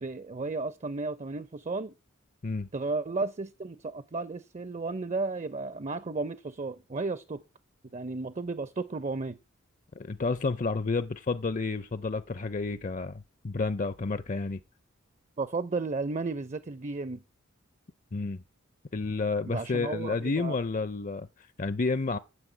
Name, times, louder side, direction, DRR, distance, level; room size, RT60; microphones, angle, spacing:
voice 1, 0.0-1.9 2.7-7.4 7.9-9.4 15.4-17.2 19.5-20.6, right 3 dB, 30° right, 0.5 m, -33 dB
voice 2, 10.0-14.6 18.1-18.4 18.9-22.2, left 3 dB, 35° left, 0.5 m, -30 dB
9.7 x 7.8 x 7.9 m
head